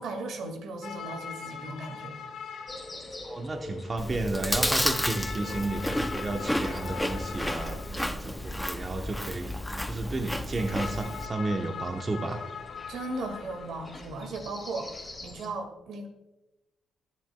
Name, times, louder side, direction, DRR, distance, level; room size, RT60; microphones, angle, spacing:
voice 1, 0.0-2.2 12.9-16.1, right 2 dB, 75° right, 5 dB, 2.0 m, -37 dB
sound 1, 0.8-14.1, left 6 dB, 65° left, 1.6 m, -42 dB
sound 2, 2.7-15.5, left 2 dB, 20° left, 2.4 m, -46 dB
voice 2, 3.2-9.5 9.9-12.4, right 2 dB, 30° right, 4 dB, 0.9 m, -32 dB
Chewing mastication, 4.0-11.3, left 1 dB, 5° left, 0.6 m, -31 dB
22.5 x 7.5 x 2.3 m, 1.0 s
cardioid pair, 90°, 0 cm